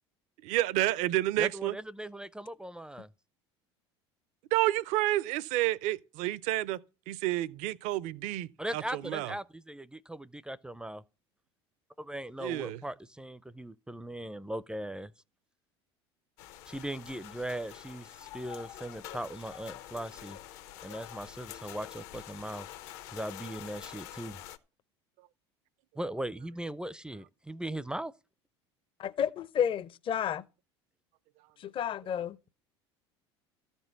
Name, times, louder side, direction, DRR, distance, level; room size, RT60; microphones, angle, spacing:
voice 1, 0.4-1.8 4.5-6.8 7.1-9.3 12.4-12.8, right 16 dB, 60° right, 0.6 m, -30 dB
voice 2, 1.4-3.1 8.6-11.0 12.0-15.1 16.7-20.4 20.8-22.7 23.1-24.4 26.0-28.1, right 1 dB, 5° right, 0.5 m, -39 dB
sound 1, 16.4-24.6, left 12 dB, 65° left, 0.9 m, -46 dB
voice 3, 29.0-30.4 31.6-32.4, left 9 dB, 40° left, 0.6 m, -31 dB
13.5 x 4.5 x 8.1 m
hypercardioid pair, 75°, 14 cm